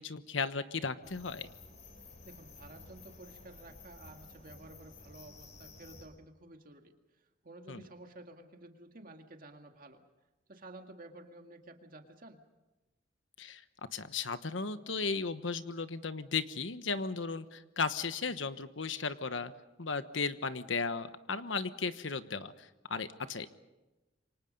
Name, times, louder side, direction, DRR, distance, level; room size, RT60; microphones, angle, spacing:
voice 1, 0.0-1.5 7.7-7.8 13.4-13.6 13.9-19.5 19.8-23.5, left 4 dB, 75° left, 11 dB, 1.2 m, -35 dB
sound 1, 1.0-6.1, left 3 dB, 40° left, 4.5 m, -53 dB
voice 2, 2.2-10.0 10.5-12.4, right 2 dB, 45° right, 4 dB, 1.9 m, -52 dB
28.0 x 25.0 x 5.4 m, 1.1 s
head